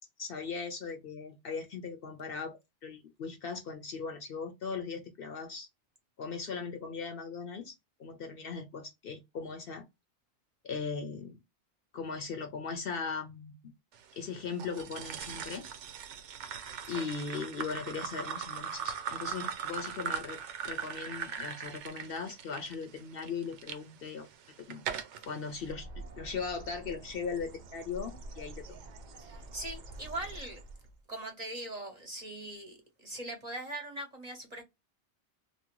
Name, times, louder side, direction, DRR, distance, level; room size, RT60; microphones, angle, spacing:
voice 1, 0.2-5.7 6.2-7.7 8.0-9.8 10.6-11.4 11.9-13.6 14.1-15.7 16.9-20.4 20.6-24.3 24.7-24.8 25.3-25.9 26.2-28.6, left 5 dB, 60° left, 0.7 m, -38 dB
sound 1, 14.6-23.8 24.3-25.3, right 7 dB, 85° right, 0.9 m, -39 dB
Bird, 25.5-31.0, right 2 dB, 55° right, 0.5 m, -47 dB
voice 2, 29.2-30.6 31.1-34.6, right 1 dB, 40° right, 0.9 m, -41 dB
2.7 x 2.6 x 2.9 m
omnidirectional pair, 1.2 m